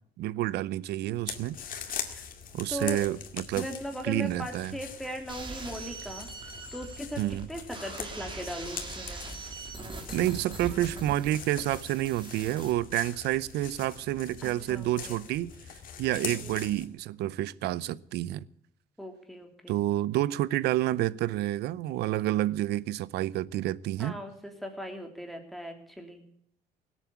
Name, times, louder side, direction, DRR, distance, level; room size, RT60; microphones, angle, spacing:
voice 1, 0.2-2.0 2.5-3.7 4.0-4.8 7.2-7.5 10.1-15.5 16.0-18.5 19.7-24.2, right 14 dB, 75° right, 0.7 m, -29 dB
sound 1, 1.3-16.9, left 8 dB, 55° left, 2.1 m, -43 dB
voice 2, 2.7-3.0 3.5-6.3 6.7-9.3 14.4-15.2 16.4-16.6 19.0-19.8 24.0-26.2, equal, ahead, 3.1 m, -39 dB
sound 2, 5.3-12.7, right 3 dB, 30° right, 3.3 m, -42 dB
18.0 x 8.4 x 8.3 m
cardioid pair, 110°, 17 cm